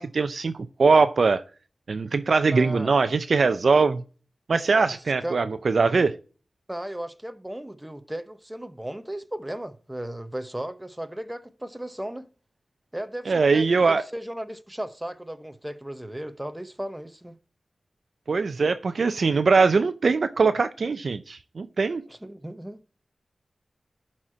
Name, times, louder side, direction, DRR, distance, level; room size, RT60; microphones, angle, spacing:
voice 1, 0.0-1.4 1.9-4.0 4.5-6.2 13.3-14.0 18.3-22.0, right 4 dB, 70° right, 0.5 m, -21 dB
voice 2, 2.5-2.9 5.2-5.4 6.7-12.2 12.9-17.4 22.1-22.8, right 1 dB, 10° right, 0.7 m, -35 dB
11.0 x 4.3 x 4.4 m
wide cardioid pair, 95°, 0 cm